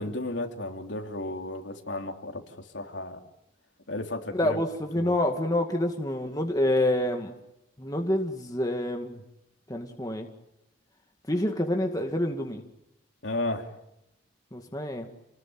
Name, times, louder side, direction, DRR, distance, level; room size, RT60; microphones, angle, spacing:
voice 1, 0.0-2.4 2.7-3.2 3.9-4.6 4.9-5.1 13.2-13.7, left 2 dB, 75° left, 3 dB, 3.1 m, -33 dB
voice 2, 4.3-7.3 7.8-9.2 9.7-10.3 11.3-12.6 14.5-15.1, left 1 dB, 20° left, 3 dB, 2.1 m, -27 dB
29.0 x 20.0 x 9.3 m, 0.90 s
head